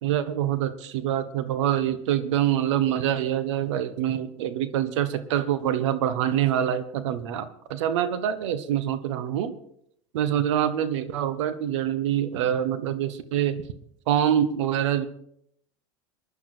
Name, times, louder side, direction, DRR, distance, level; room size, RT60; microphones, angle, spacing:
voice 1, 0.0-9.5 10.1-13.6 14.1-15.1, right 10 dB, 80° right, 12 dB, 1.2 m, -25 dB
21.5 x 11.0 x 4.4 m, 0.70 s
hypercardioid pair, 95°, 15 cm